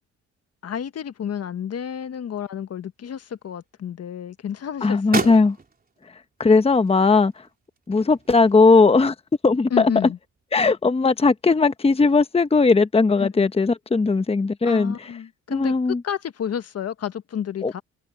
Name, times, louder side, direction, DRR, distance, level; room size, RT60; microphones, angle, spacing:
voice 1, 0.6-5.3 9.7-10.2 13.2-13.5 14.6-15.7 16.0-17.8, left 8 dB, 55° left, 1.5 m, -30 dB
sound 1, 2.7-3.8 4.2-11.5, right 4 dB, 30° right, 3.8 m, -35 dB
voice 2, 4.8-5.6 6.4-7.3 7.9-9.1 9.4-9.9 10.5-15.1 15.5-16.0 17.6-17.7, left 4 dB, 20° left, 1.0 m, -18 dB
cardioid pair, 90°, 30 cm